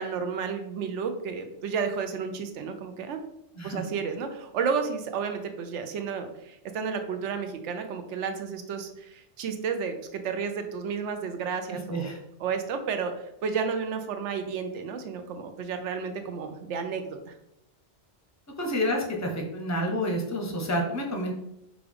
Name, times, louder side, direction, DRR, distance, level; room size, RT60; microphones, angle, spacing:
voice 1, 0.0-3.2 3.6-12.1 12.4-17.3, right 6 dB, 85° right, 7 dB, 0.9 m, -32 dB
voice 2, 11.7-12.2 18.6-21.3, equal, 20° left, 1 dB, 0.5 m, -29 dB
5.1 x 2.3 x 3.3 m, 0.83 s
omnidirectional pair, 1.2 m